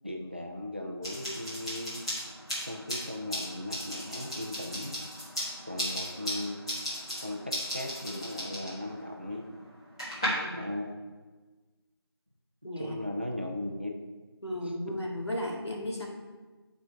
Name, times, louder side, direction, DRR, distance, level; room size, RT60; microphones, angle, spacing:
voice 1, 0.0-2.0 2.7-5.0 5.7-6.9 7.2-9.4 10.5-11.2 12.8-13.9, left 1 dB, 25° right, 2 dB, 0.5 m, -37 dB
sound 1, 1.0-10.3, equal, 10° left, 1.6 m, -37 dB
voice 2, 12.6-13.0 14.4-16.1, left 1 dB, 80° left, -1 dB, 2.0 m, -35 dB
9.2 x 4.5 x 4.5 m, 1.3 s
figure-of-eight pair, 170°, 14 cm